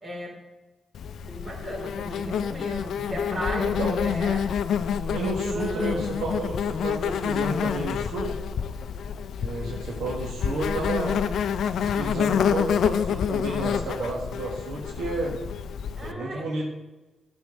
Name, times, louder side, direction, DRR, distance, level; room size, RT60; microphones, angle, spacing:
voice 1, 0.0-0.4 1.3-4.5 5.4-6.0 16.0-16.5, right 1 dB, 30° right, 0 dB, 3.2 m, -35 dB
Insect, 0.9-16.1, left 7 dB, 75° left, 0.4 m, -28 dB
voice 2, 3.6-4.1 5.1-8.4 9.4-11.2 11.8-15.4 16.0-16.6, right 2 dB, 85° right, -2 dB, 1.5 m, -31 dB
11.0 x 4.5 x 6.4 m, 1.1 s
supercardioid pair, 60°, 0 cm